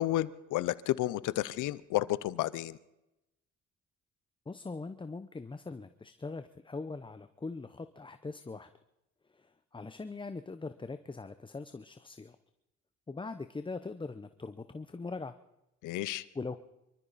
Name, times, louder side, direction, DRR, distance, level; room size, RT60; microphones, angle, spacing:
voice 1, 0.0-2.8 15.8-16.2, left 15 dB, 85° left, 18 dB, 0.7 m, -31 dB
voice 2, 4.5-8.7 9.3-12.4 13.1-15.3 16.1-16.6, left 3 dB, 15° left, 10 dB, 0.7 m, -41 dB
25.5 x 13.5 x 4.2 m, 0.91 s
cardioid pair, 90°, 30 cm